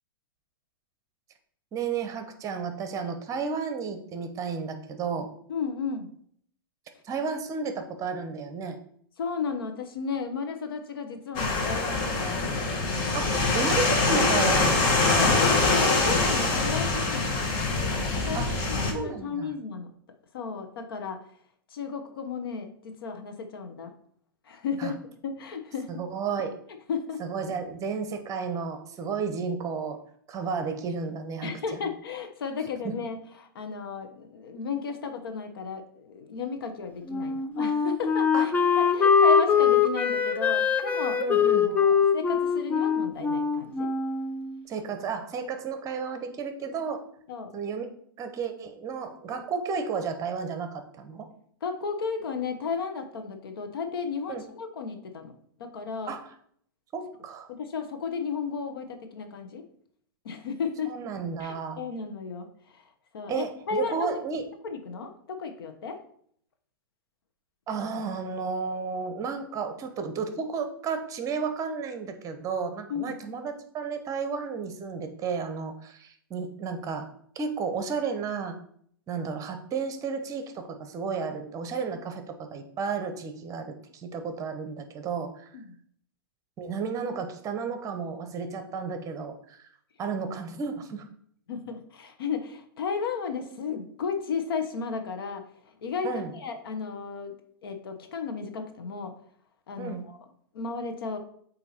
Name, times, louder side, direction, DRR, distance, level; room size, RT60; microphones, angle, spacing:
voice 1, 1.7-5.3 7.0-8.8 13.1-15.2 18.3-18.6 18.9-19.5 24.8-24.9 26.0-26.6 27.2-30.0 30.3-31.8 32.8-32.9 38.3-38.5 41.2-41.7 44.7-47.0 47.5-47.8 48.2-51.3 54.3-54.4 56.1-56.2 56.9-57.5 60.9-61.8 63.3-64.4 67.7-77.1 77.3-78.6 79.1-85.5 86.6-89.7 90.0-91.0 96.0-96.3 99.8-100.0, right 5 dB, 25° right, 7 dB, 0.8 m, -32 dB
voice 2, 5.5-6.1 9.2-12.4 15.1-17.4 18.2-19.9 20.3-21.3 21.7-23.9 24.4-26.0 26.7-27.2 31.4-41.2 41.6-43.9 47.3-47.5 51.6-55.3 55.6-56.1 57.5-59.6 60.2-60.9 61.4-64.1 64.6-66.0 72.9-73.1 85.5-85.8 91.5-97.4 97.6-99.2 99.7-100.2 100.5-101.2, left 5 dB, 75° left, 6 dB, 0.9 m, -34 dB
sound 1, 11.4-18.9, left 3 dB, 40° left, 1.3 m, -24 dB
Wind instrument woodwind instrument, 37.1-44.6, left 6 dB, 15° left, 0.4 m, -23 dB
8.0 x 2.8 x 4.2 m, 0.64 s
hypercardioid pair, 115°, 12 cm